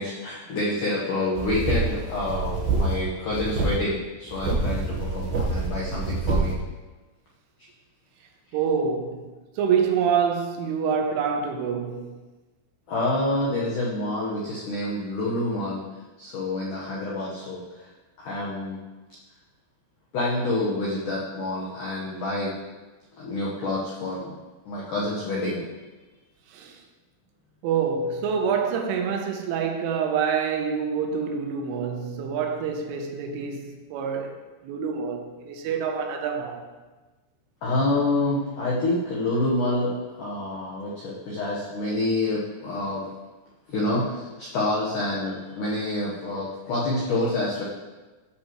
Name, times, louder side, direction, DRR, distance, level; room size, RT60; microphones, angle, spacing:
voice 1, 0.0-6.6 12.9-15.8 16.2-17.9 18.2-18.8 20.1-22.5 23.2-24.3 24.7-25.6 37.6-43.0 43.7-47.6, left 2 dB, 75° left, 1.9 m, -27 dB
sound 1, 1.4-3.0 3.3-3.8 4.3-6.5, right 3 dB, 65° right, 2.5 m, -26 dB
voice 2, 8.5-9.3 9.6-12.2 26.5-26.8 27.6-36.6, right 6 dB, 80° right, 3.3 m, -26 dB
14.0 x 7.0 x 3.1 m
omnidirectional pair, 5.7 m